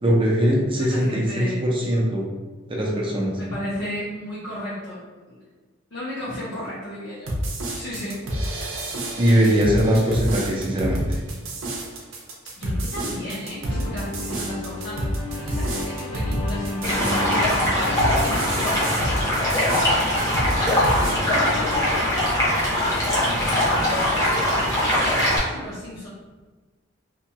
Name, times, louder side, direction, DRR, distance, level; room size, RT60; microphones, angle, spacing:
voice 1, 0.0-2.3 2.7-3.3 9.2-11.2, equal, 25° right, -3 dB, 0.5 m, -21 dB
voice 2, 0.8-1.6 3.4-5.0 5.3-5.4 5.9-7.3 7.7-8.5 9.2-9.5 12.6-18.8 19.7-20.1 20.6-22.6 22.9-23.7 24.2-26.1, left 1 dB, 55° left, -10 dB, 0.7 m, -34 dB
sound 1, 7.3-21.1, right 1 dB, 70° right, 0.6 m, -29 dB
sound 2, 13.6-20.1, left 2 dB, 85° left, 1.5 m, -33 dB
Stream, 16.8-25.4, left 1 dB, 15° left, 0.7 m, -21 dB
2.8 x 2.2 x 2.8 m, 1.3 s
head